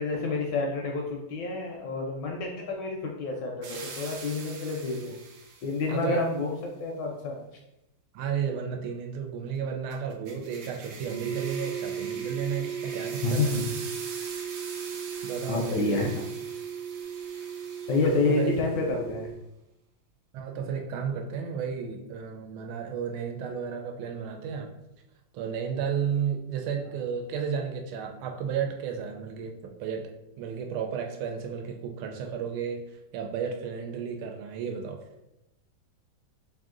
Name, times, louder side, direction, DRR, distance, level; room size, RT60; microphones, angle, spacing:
voice 1, 0.0-5.2 5.6-7.4 13.2-13.6 15.5-16.2 17.9-19.3, left 3 dB, 75° left, 0 dB, 1.0 m, -28 dB
sound 1, 3.6-6.0 9.9-18.8, right 4 dB, 70° right, 1.3 m, -43 dB
voice 2, 5.9-6.2 8.1-13.6 15.2-15.7 18.2-18.6 20.3-24.7 25.3-30.1 30.4-35.0, right 7 dB, 85° right, 3 dB, 1.5 m, -33 dB
sound 2, 11.0-19.3, right 8 dB, 5° right, 0.5 m, -36 dB
3.5 x 2.6 x 3.7 m, 0.89 s
omnidirectional pair, 2.3 m